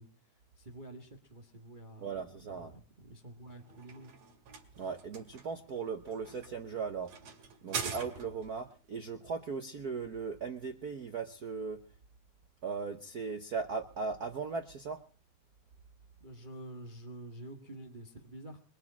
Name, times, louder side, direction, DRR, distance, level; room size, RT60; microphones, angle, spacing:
voice 1, 0.0-2.1 2.4-4.1 16.2-18.6, right 1 dB, 20° right, 5 dB, 1.4 m, -49 dB
voice 2, 2.0-2.7 4.8-7.1 7.6-11.8 12.6-15.0, right 5 dB, 80° right, 6 dB, 0.8 m, -38 dB
sound 1, 3.5-8.6, right 6 dB, 60° right, 3.3 m, -43 dB
22.0 x 7.6 x 8.6 m, 0.41 s
omnidirectional pair, 3.3 m